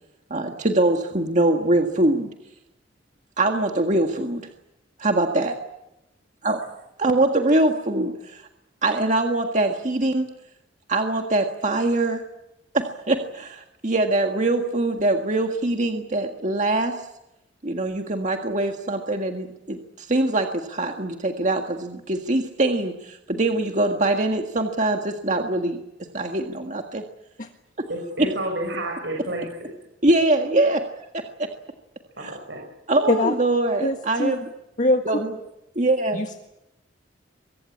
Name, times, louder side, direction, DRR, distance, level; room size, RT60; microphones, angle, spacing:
voice 1, 0.3-2.3 3.4-4.5 5.0-5.6 6.4-6.6 7.0-8.5 8.8-10.3 10.9-12.2 12.7-17.0 17.6-25.8 26.1-27.0 30.0-30.9 31.1-31.5 32.2-32.3 32.9-34.5 35.1-35.4 35.8-36.2, right 2 dB, 40° right, 3 dB, 1.7 m, -23 dB
voice 2, 27.9-29.7 32.2-32.6, right 1 dB, 65° right, 1 dB, 6.3 m, -30 dB
voice 3, 33.8-34.4 34.8-35.2 36.1-36.5, left 2 dB, 45° left, 4 dB, 1.7 m, -23 dB
23.5 x 23.5 x 8.5 m, 0.90 s
head